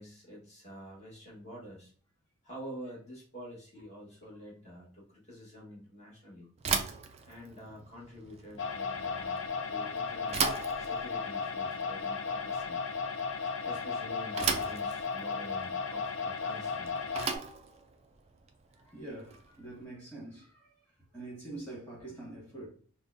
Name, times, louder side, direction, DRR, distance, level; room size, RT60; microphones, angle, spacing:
voice 1, 0.0-1.9 2.4-6.5 7.2-10.4 10.8-12.8 13.6-16.9, equal, 30° left, 1.3 m, -47 dB
Bicycle / Thump thud, 6.6-19.7, right 6 dB, 30° right, 0.3 m, -38 dB
sound 1, 8.6-17.4, left 5 dB, 65° left, 0.5 m, -35 dB
voice 2, 18.7-22.7, right 2 dB, 10° left, 1.6 m, -46 dB
5.2 x 2.2 x 2.6 m
head